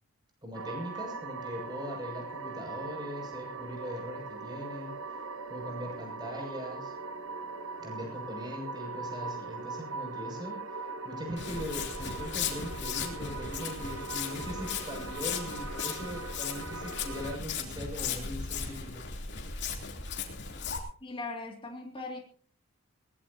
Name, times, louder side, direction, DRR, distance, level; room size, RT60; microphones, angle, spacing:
voice 1, 0.4-5.0 5.5-7.0 7.8-19.1, equal, 20° right, 2 dB, 6.7 m, -40 dB
sound 1, 0.5-17.4, right 4 dB, 60° right, 1.4 m, -40 dB
Walk footsteps, 11.4-20.8, left 6 dB, 50° left, 3.2 m, -37 dB
voice 2, 21.0-22.2, left 3 dB, 25° left, 1 dB, 2.5 m, -39 dB
21.5 x 19.0 x 2.8 m, 0.42 s
head